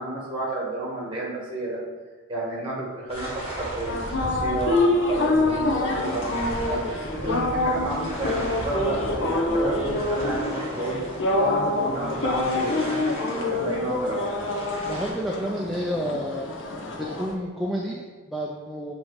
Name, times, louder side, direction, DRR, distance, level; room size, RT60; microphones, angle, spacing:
voice 1, 0.0-1.8 2.3-6.3 6.6-11.0 11.4-14.4, right 1 dB, 25° right, -4 dB, 1.7 m, -31 dB
Calm Waves ambience, 3.1-15.1, equal, 25° left, 1.8 m, -37 dB
sound 1, 3.9-17.3, left 2 dB, 65° left, 0.8 m, -26 dB
voice 2, 14.8-16.5 17.2-18.9, equal, ahead, -4 dB, 0.4 m, -30 dB
7.1 x 3.1 x 4.8 m, 1.4 s
head